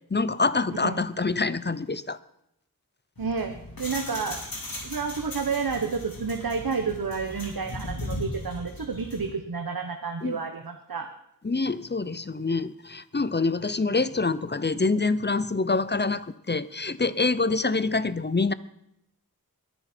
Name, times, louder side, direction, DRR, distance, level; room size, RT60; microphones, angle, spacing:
voice 1, 0.1-2.2 10.2-10.4 11.4-18.5, left 3 dB, 30° left, 16 dB, 0.7 m, -26 dB
sound 1, 3.2-9.3, left 2 dB, 70° left, 3.9 m, -38 dB
voice 2, 3.2-4.4 4.8-11.1, right 5 dB, 75° right, 5 dB, 1.2 m, -30 dB
21.5 x 9.9 x 4.5 m, 0.79 s
wide cardioid pair, 55°, 36 cm